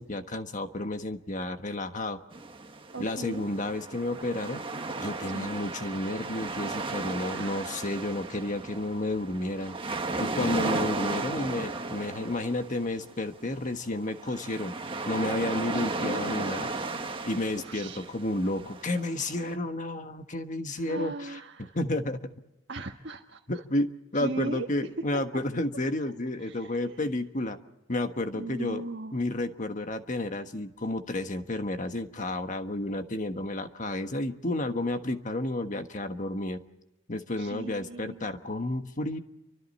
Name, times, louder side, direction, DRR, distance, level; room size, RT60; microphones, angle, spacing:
voice 1, 0.0-2.2 3.0-4.6 5.0-9.8 10.2-14.7 15.1-16.7 17.3-22.4 23.5-27.6 27.9-28.8 29.1-36.6 37.1-39.2, left 1 dB, 40° left, 7 dB, 1.4 m, -31 dB
sound 1, 2.3-19.5, right 3 dB, 25° right, 1.4 m, -35 dB
voice 2, 2.9-3.5 5.3-5.5 7.3-7.9 15.7-16.3 17.6-18.1 20.7-21.8 22.7-23.6 24.1-24.7 25.1-25.2 26.4-27.2 28.3-29.2 37.4-38.3, right 2 dB, 60° right, 0 dB, 1.5 m, -39 dB
29.0 x 25.0 x 4.3 m, 0.97 s
head